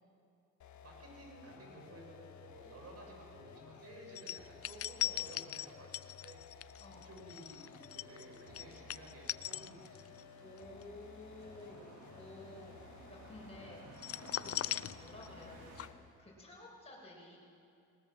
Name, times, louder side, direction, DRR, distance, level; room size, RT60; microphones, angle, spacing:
sound 1, 0.6-16.1, left 7 dB, 70° left, 1.7 m, -56 dB
voice 1, 0.8-6.7 7.0-10.0, right 1 dB, 55° right, 0 dB, 7.5 m, -54 dB
sound 2, 4.2-10.2 10.6-10.8 14.0-15.5 15.8-15.9, left 12 dB, 50° left, 0.5 m, -40 dB
voice 2, 6.8-7.1 10.4-14.0 14.3-15.9 16.2-17.4, left 2 dB, 20° left, -3 dB, 7.3 m, -53 dB
sound 3, 7.5-15.9, right 4 dB, 80° right, 2.5 m, -57 dB
21.0 x 19.0 x 7.8 m, 2.7 s
cardioid pair, 90°, 30 cm